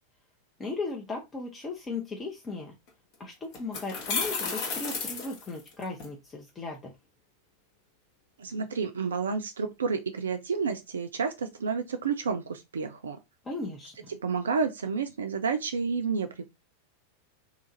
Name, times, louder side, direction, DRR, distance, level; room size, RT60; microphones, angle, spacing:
voice 1, 0.6-2.7 3.2-6.9 13.4-14.1, left 3 dB, 20° left, 0.7 m, -37 dB
sound 1, 2.9-3.0 3.5-6.1, left 5 dB, 45° left, 0.9 m, -32 dB
voice 2, 8.4-13.2 14.1-16.4, right 5 dB, 70° right, 0.3 m, -30 dB
2.8 x 2.4 x 3.8 m
figure-of-eight pair, 90°, 0 cm